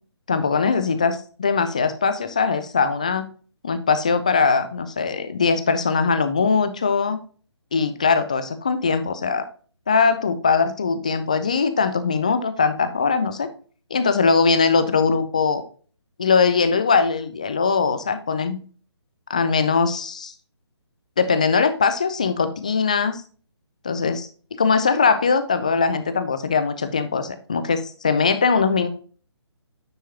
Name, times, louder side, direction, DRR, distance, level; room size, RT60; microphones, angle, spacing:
voice 1, 0.3-3.3 3.6-7.2 7.7-9.4 9.9-13.5 13.9-15.6 16.2-18.6 19.3-20.3 21.2-23.2 23.8-24.3 24.6-28.9, left 5 dB, 15° left, 10 dB, 0.3 m, -21 dB
9.3 x 4.5 x 2.8 m, 0.41 s
figure-of-eight pair, 145°, 15 cm